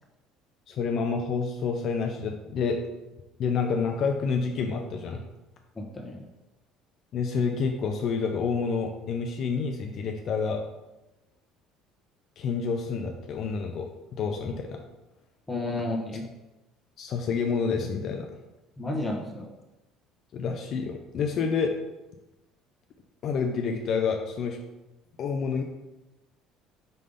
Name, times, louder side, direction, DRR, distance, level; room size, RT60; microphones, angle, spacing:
voice 1, 0.7-2.9 3.4-5.2 7.1-10.6 12.4-14.8 17.0-18.3 20.3-21.8 23.2-24.6 25.2-25.6, left 5 dB, 50° left, 3 dB, 0.6 m, -28 dB
voice 2, 5.7-6.2 15.5-16.3 18.8-19.5, left 2 dB, 10° left, -1 dB, 1.3 m, -32 dB
5.5 x 3.3 x 5.3 m, 1.0 s
cardioid pair, 110°, 0 cm